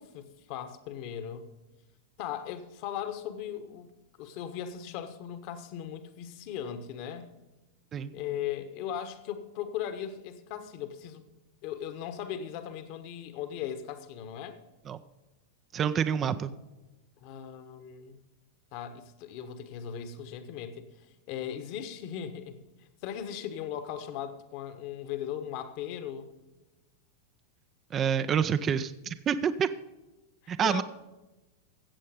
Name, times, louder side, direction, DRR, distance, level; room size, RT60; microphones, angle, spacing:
voice 1, 0.0-1.5 2.2-3.9 4.2-7.3 8.1-11.3 11.6-14.6 17.2-18.2 18.7-22.6 23.0-26.3 30.4-30.8, left 9 dB, 45° left, 9 dB, 1.2 m, -38 dB
voice 2, 15.7-16.5 27.9-29.7 30.5-30.8, right 7 dB, 25° right, 12 dB, 0.5 m, -27 dB
15.5 x 7.5 x 5.1 m, 1.1 s
figure-of-eight pair, 90°, 0 cm